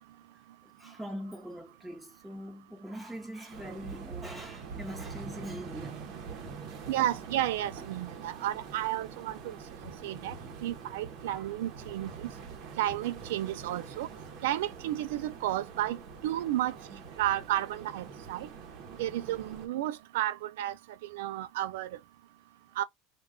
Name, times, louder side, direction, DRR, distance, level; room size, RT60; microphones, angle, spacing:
voice 1, 0.6-6.0 10.3-10.4 11.3-11.4, equal, 5° right, 1.0 m, -42 dB
sound 1, 3.5-19.7, right 5 dB, 50° right, 0.9 m, -45 dB
voice 2, 6.9-9.6 10.0-10.4 10.6-12.3 12.8-14.1 14.4-16.0 16.2-16.8 17.2-18.5 19.0-20.7 21.0-21.9 22.8-22.9, right 13 dB, 85° right, 0.3 m, -32 dB
2.3 x 2.3 x 3.5 m
supercardioid pair, 130°, 0 cm